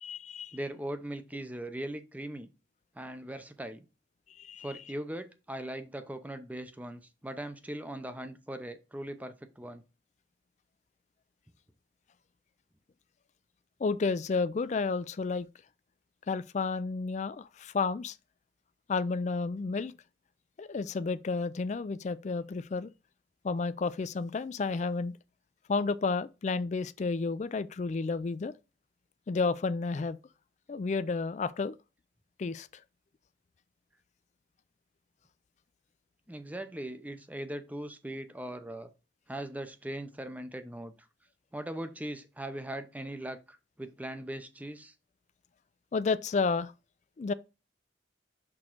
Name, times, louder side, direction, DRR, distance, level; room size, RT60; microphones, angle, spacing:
voice 1, 0.0-0.6 4.4-4.8 13.8-15.5 16.3-18.2 18.9-19.9 20.6-22.9 23.4-25.1 25.7-28.5 29.3-30.2 30.7-31.7 32.4-32.8 45.9-46.7 47.2-47.3, left 4 dB, 40° left, 0.3 m, -31 dB
voice 2, 0.5-2.5 3.0-3.8 4.6-9.8 36.3-38.9 39.3-40.9 41.5-44.9, right 1 dB, 10° right, 0.6 m, -40 dB
6.1 x 3.7 x 4.5 m
head